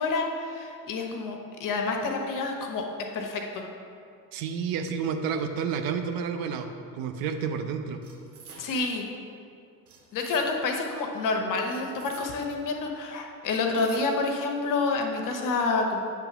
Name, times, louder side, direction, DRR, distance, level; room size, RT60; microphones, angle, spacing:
voice 1, 0.0-2.8 3.1-3.6 8.6-9.0 10.1-16.0, left 3 dB, 45° left, 3 dB, 1.0 m, -28 dB
voice 2, 4.3-6.7 6.9-8.0, right 6 dB, 55° right, 6 dB, 0.6 m, -30 dB
sound 1, 8.0-9.0 9.9-10.8 11.7-12.6 13.4-14.4, right 4 dB, 85° right, 0.9 m, -49 dB
8.3 x 3.4 x 5.7 m, 2.4 s
figure-of-eight pair, 60°, 44 cm